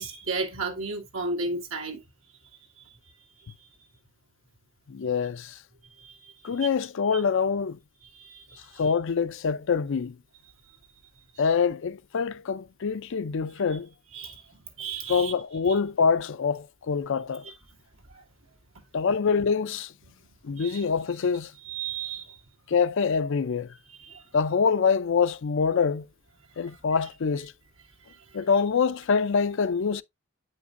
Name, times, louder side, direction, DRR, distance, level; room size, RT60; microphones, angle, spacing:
voice 1, 0.0-2.0 3.1-3.3 3.6-3.9 6.0-6.7 8.0-8.8 14.1-14.5 14.8-15.3 15.7-15.8 17.4-17.5 18.1-18.2 20.6-20.8 21.6-22.4 24.0-24.2 26.6-26.7, right 3 dB, 70° right, 2.1 m, -34 dB
voice 2, 4.9-5.6 6.4-7.8 8.8-10.2 11.4-13.9 15.1-17.4 18.9-19.9 20.4-21.5 22.7-23.7 24.3-26.1 26.6-27.5 28.3-30.0, left 5 dB, 65° left, 0.5 m, -25 dB
9.0 x 5.4 x 2.5 m
head